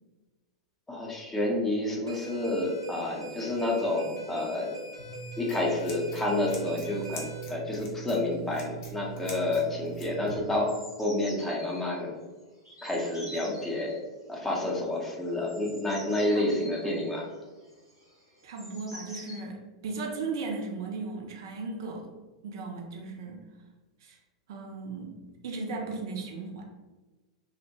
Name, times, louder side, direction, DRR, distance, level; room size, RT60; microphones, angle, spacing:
voice 1, 0.9-4.8 5.4-12.2 12.8-14.0 14.3-17.3, left 1 dB, 10° left, -2 dB, 0.6 m, -29 dB
sound 1, 2.1-7.4, right 3 dB, 85° right, 0.6 m, -43 dB
Scissors, 5.0-10.4, right 6 dB, 50° left, 0.6 m, -42 dB
sound 2, 8.1-8.2 8.3-8.7 9.0-9.4 9.6-11.9 12.6-14.0 15.0-19.4, equal, 85° left, 1.0 m, -47 dB
voice 2, 16.3-16.9 18.4-19.6 19.8-22.1 22.4-23.4 24.0-24.2 24.5-25.2 25.4-26.6, right 3 dB, 55° right, 1 dB, 0.4 m, -36 dB
2.5 x 2.1 x 2.8 m, 1.2 s
figure-of-eight pair, 90°, 3 cm